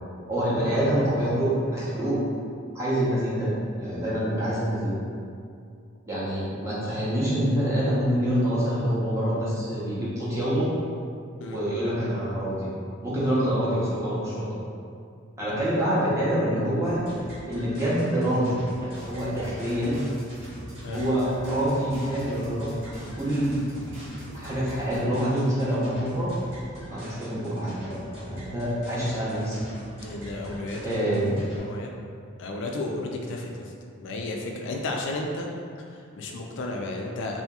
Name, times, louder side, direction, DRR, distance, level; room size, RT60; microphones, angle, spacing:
voice 1, 0.3-2.2 2.7-4.9 6.1-10.7 11.5-12.7 13.0-14.5 15.4-17.0 17.5-20.0 20.9-23.6 24.3-26.3 26.9-29.6 30.8-31.3, equal, 15° right, -9 dB, 0.7 m, -26 dB
sound 1, 16.8-31.6, equal, 60° right, 1.1 m, -44 dB
sound 2, 18.9-25.0, right 1 dB, 75° right, 1.3 m, -43 dB
voice 2, 30.0-31.0 31.6-31.9 32.4-33.7 34.0-35.5 35.8-37.4, left 2 dB, 60° left, 1 dB, 0.3 m, -33 dB
2.8 x 2.7 x 2.3 m, 2.3 s
head